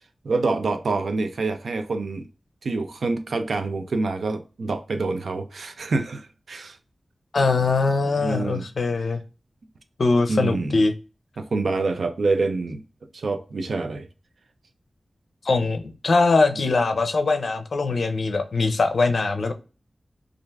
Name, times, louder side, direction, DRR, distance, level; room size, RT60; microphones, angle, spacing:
voice 1, 0.2-2.2 2.6-6.8 8.2-8.7 10.3-10.8 11.4-12.8 13.1-14.1, right 3 dB, 80° right, 0.4 m, -26 dB
voice 2, 7.3-9.2 10.0-10.9 15.4-19.5, left 3 dB, 70° left, 0.4 m, -22 dB
2.4 x 2.2 x 3.2 m
wide cardioid pair, 90°, 0 cm